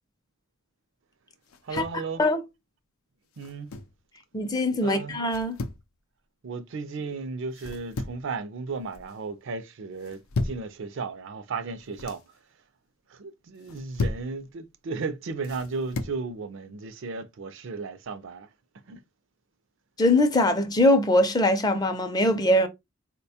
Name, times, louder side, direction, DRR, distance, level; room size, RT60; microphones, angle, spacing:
sound 1, 1.5-2.0 3.3-4.0 5.2-5.8 7.5-8.3 8.7-9.1 10.0-10.7 11.7-12.2 13.5-14.3 15.4-16.2, left 3 dB, 85° left, 0.5 m, -34 dB
voice 1, 1.6-2.2 3.4-3.7 4.8-5.2 6.4-12.2 13.1-18.5 18.9-19.0, right 4 dB, 60° right, 0.4 m, -35 dB
voice 2, 4.3-5.6 20.0-22.7, left 1 dB, 20° left, 0.5 m, -22 dB
4.1 x 2.2 x 2.7 m
head